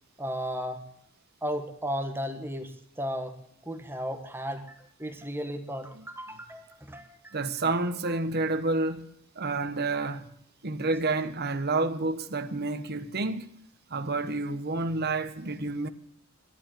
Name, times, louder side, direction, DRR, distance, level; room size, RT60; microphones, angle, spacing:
voice 1, 0.2-0.8 1.4-3.4 3.6-7.4 8.0-8.1, equal, 10° right, 1.6 m, -35 dB
voice 2, 7.3-9.1 9.4-10.3 10.6-13.6 13.9-15.9, right 3 dB, 50° right, 1.2 m, -29 dB
11.5 x 11.0 x 9.0 m
head